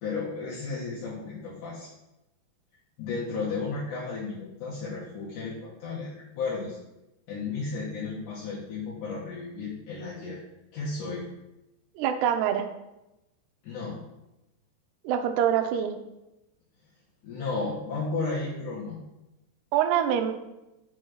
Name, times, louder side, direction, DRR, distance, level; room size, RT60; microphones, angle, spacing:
voice 1, 0.0-1.9 3.0-6.8 7.3-10.4 10.7-11.2 13.6-14.0 17.2-19.0, left 4 dB, 60° left, -7 dB, 2.3 m, -33 dB
voice 2, 12.0-12.7 15.0-15.9 19.7-20.3, right 9 dB, 80° right, 6 dB, 2.7 m, -25 dB
6.5 x 4.2 x 6.2 m, 0.94 s
omnidirectional pair, 4.9 m